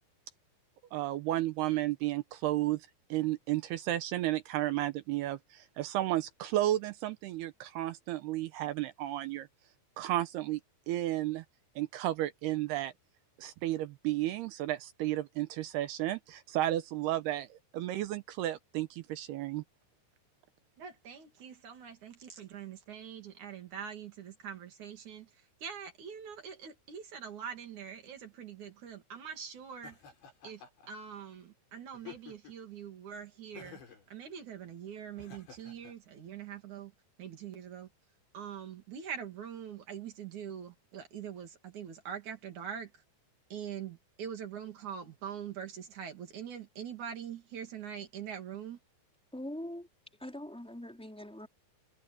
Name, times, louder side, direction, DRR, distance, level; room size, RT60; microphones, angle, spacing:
voice 1, 0.9-9.5 10.0-10.6 10.9-11.4 11.8-12.9 13.4-19.6, right 14 dB, 80° right, 2.6 m, -33 dB
voice 2, 20.8-25.3 25.6-30.0 30.4-33.8 34.1-36.9 37.2-37.9 38.3-42.9 43.5-48.8, right 8 dB, 45° right, 3.6 m, -43 dB
Laughter, 29.8-30.9 31.9-32.7 33.6-34.1 35.2-35.9, left 7 dB, 75° left, 7.8 m, -51 dB
voice 3, 49.3-49.9 50.2-51.5, left 1 dB, ahead, 3.7 m, -42 dB
omnidirectional pair, 5.1 m